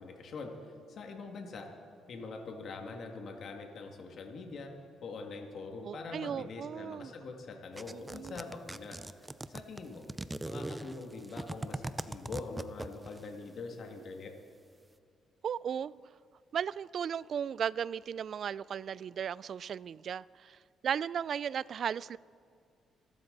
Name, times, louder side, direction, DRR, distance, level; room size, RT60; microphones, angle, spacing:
voice 1, 0.0-1.7 2.1-4.7 5.0-9.0 9.5-10.0 10.5-14.3, left 3 dB, 60° left, 2.1 m, -43 dB
voice 2, 5.8-7.1 7.9-8.4 15.4-15.9 16.5-20.6 20.8-22.2, right 8 dB, 60° right, 0.3 m, -36 dB
sound 1, 7.8-13.2, right 2 dB, 15° right, 0.6 m, -40 dB
28.0 x 12.5 x 4.0 m
cardioid pair, 90°, 0 cm